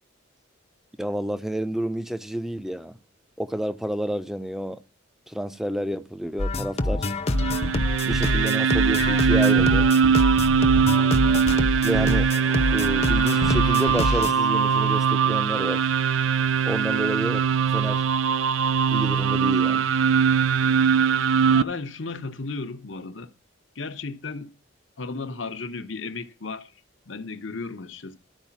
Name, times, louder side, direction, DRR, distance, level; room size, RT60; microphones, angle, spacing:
voice 1, 1.0-3.0 3.4-4.8 5.3-7.1 8.0-9.9 11.8-12.3 12.7-15.9 16.7-18.0 18.9-19.9, equal, ahead, 0.6 m, -30 dB
sound 1, 6.4-14.3, left 1 dB, 30° left, 0.8 m, -26 dB
sound 2, 7.3-21.6, right 6 dB, 85° right, 0.5 m, -21 dB
voice 2, 21.5-23.3 23.7-24.5 25.0-26.7 27.1-28.2, left 3 dB, 70° left, 1.0 m, -34 dB
12.5 x 4.9 x 7.2 m
head